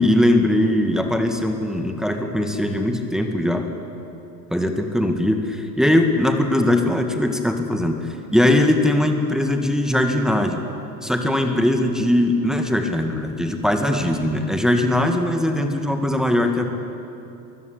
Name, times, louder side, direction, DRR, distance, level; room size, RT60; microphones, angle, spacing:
voice 1, 0.0-3.7 4.5-8.0 8.3-10.6 11.0-16.8, left 1 dB, ahead, 5 dB, 2.1 m, -20 dB
23.5 x 15.0 x 8.6 m, 2.8 s
hypercardioid pair, 75°, 48 cm